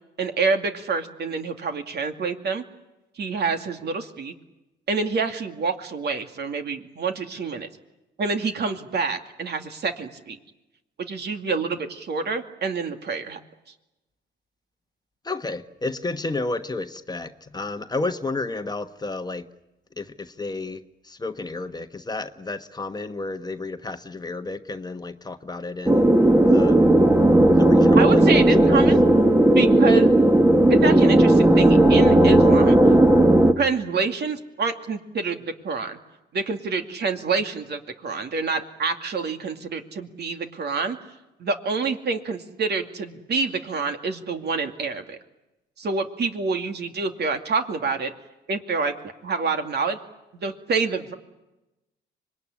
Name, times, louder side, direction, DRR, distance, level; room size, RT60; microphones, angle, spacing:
voice 1, 0.2-2.6 3.2-4.3 4.9-7.7 8.2-10.4 11.0-13.4 27.9-29.0 29.3-30.3 30.7-32.8 33.6-36.0 36.3-41.0 41.4-45.2 45.8-48.1 48.5-48.9 49.2-50.0 50.4-51.1, right 4 dB, 55° right, 6 dB, 2.5 m, -27 dB
voice 2, 15.2-19.5 20.0-20.8 21.1-26.1 26.5-26.8 27.6-28.8, left 3 dB, 20° left, 8 dB, 1.2 m, -31 dB
sound 1, 25.9-33.5, right 1 dB, 10° right, 1.5 m, -15 dB
25.5 x 21.0 x 9.9 m, 0.99 s
cardioid pair, 90°, 20 cm